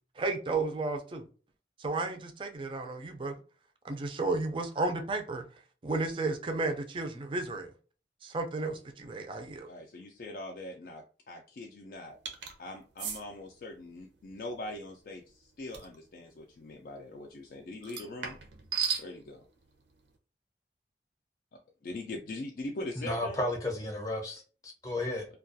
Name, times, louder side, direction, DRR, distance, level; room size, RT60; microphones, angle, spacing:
voice 1, 0.2-1.2 1.8-3.3 3.8-5.4 5.8-7.7 8.2-9.7, right 3 dB, 30° right, 0.4 m, -33 dB
voice 2, 9.7-12.2 12.6-18.4 19.0-19.4 21.8-23.5, left 2 dB, 50° left, 0.3 m, -42 dB
sound 1, 12.3-12.5 13.0-13.2 15.7-16.0 17.8-19.1, right 6 dB, 85° right, 0.5 m, -34 dB
voice 3, 23.0-25.3, left 1 dB, 20° left, 0.6 m, -33 dB
2.3 x 2.2 x 2.6 m
head